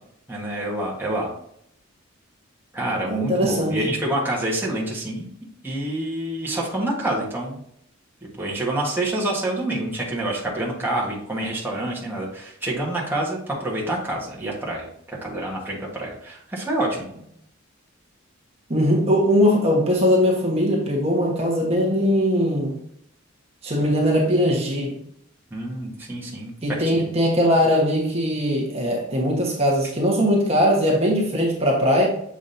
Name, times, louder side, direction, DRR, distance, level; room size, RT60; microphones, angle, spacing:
voice 1, 0.3-1.3 2.7-5.3 5.6-7.6 8.4-17.1 25.5-27.1, right 1 dB, 10° right, -4 dB, 1.4 m, -27 dB
voice 2, 3.1-4.0 18.7-22.8 23.6-25.0 26.6-32.1, equal, 30° right, -3 dB, 1.3 m, -20 dB
7.2 x 4.9 x 2.7 m, 0.72 s
head